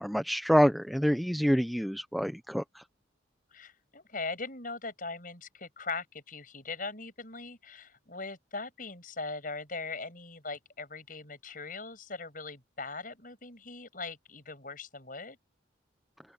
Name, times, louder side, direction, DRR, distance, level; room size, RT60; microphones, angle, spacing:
voice 1, 0.0-2.8, equal, ahead, 0.8 m, -27 dB
voice 2, 3.5-15.4, left 3 dB, 45° left, 7.8 m, -40 dB
head